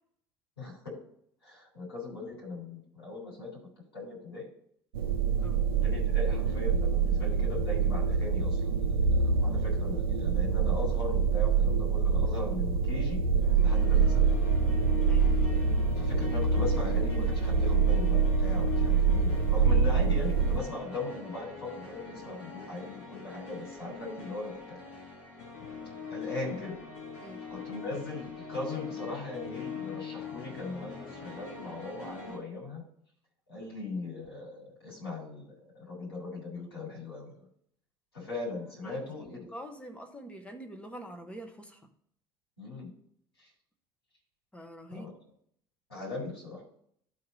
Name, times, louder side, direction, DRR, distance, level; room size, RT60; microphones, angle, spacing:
voice 1, 0.6-1.0 1.4-3.6 3.9-4.5 5.8-13.2 13.6-14.4 16.0-24.8 26.1-26.8 27.5-32.8 33.5-37.4 38.1-39.5 42.6-42.9 43.4-43.5 44.9-45.1 45.9-46.6, left 3 dB, 85° left, -4 dB, 3.8 m, -39 dB
sound 1, 4.9-20.6, right 5 dB, 70° right, 0.6 m, -26 dB
sound 2, 13.4-32.4, left 6 dB, 55° left, 1.8 m, -42 dB
voice 2, 15.0-15.3 27.2-27.5 38.8-41.8 44.5-45.1, right 1 dB, 10° left, 4 dB, 1.1 m, -46 dB
12.0 x 4.1 x 4.1 m, 0.66 s
figure-of-eight pair, 65°, 13 cm